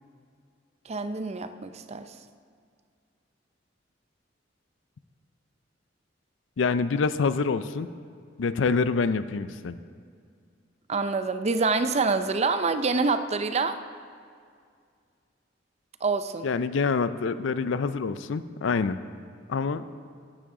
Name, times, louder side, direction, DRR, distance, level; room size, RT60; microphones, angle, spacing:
voice 1, 0.9-2.1 10.9-13.8 16.0-16.5, right 4 dB, 35° right, 10 dB, 0.5 m, -26 dB
voice 2, 6.6-7.9 8.4-9.8 16.4-19.0 19.5-19.9, left 4 dB, 85° left, 13 dB, 0.5 m, -26 dB
14.0 x 10.0 x 3.8 m, 2.2 s
head